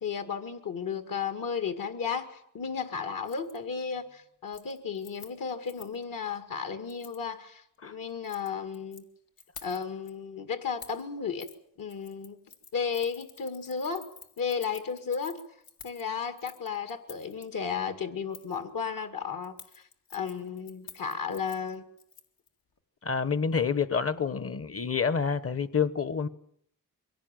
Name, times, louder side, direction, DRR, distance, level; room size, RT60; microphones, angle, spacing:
voice 1, 0.0-9.0 9.6-11.5 11.8-12.4 12.7-14.1 14.4-15.4 15.8-19.6 20.1-21.9, left 6 dB, 70° left, 2.1 m, -34 dB
Keys jangling, 3.2-3.6 3.9-4.2 4.5-6.0 6.9-7.2 8.1-9.0 9.4-10.1 10.8-11.1 11.4-11.6 11.9-17.5 18.3-18.6 19.4-22.5 22.8-22.9, left 6 dB, 85° left, 2.3 m, -51 dB
voice 2, 23.0-26.3, left 6 dB, 40° left, 1.1 m, -28 dB
23.5 x 17.0 x 9.1 m
wide cardioid pair, 160°, 35 cm